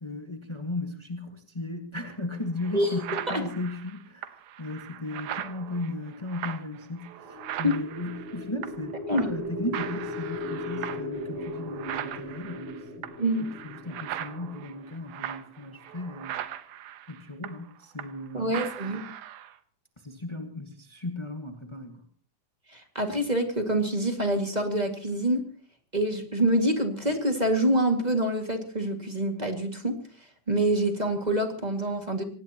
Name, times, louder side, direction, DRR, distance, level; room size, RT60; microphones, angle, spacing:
voice 1, 0.0-13.1 13.4-16.4 17.1-18.5 20.0-22.1, left 2 dB, 50° left, 4 dB, 0.3 m, -36 dB
sound 1, 2.1-2.2 2.6-8.9 9.2-9.5 9.7-18.3 18.5-19.6, right 12 dB, 85° right, 2.5 m, -39 dB
sound 2, 7.1-15.2, left 1 dB, 45° right, 8.0 m, -38 dB
voice 2, 18.3-19.0 22.7-25.4 25.9-30.0 30.5-32.2, right 1 dB, 15° right, 4 dB, 1.8 m, -26 dB
24.5 x 19.0 x 3.0 m, 0.43 s
omnidirectional pair, 3.6 m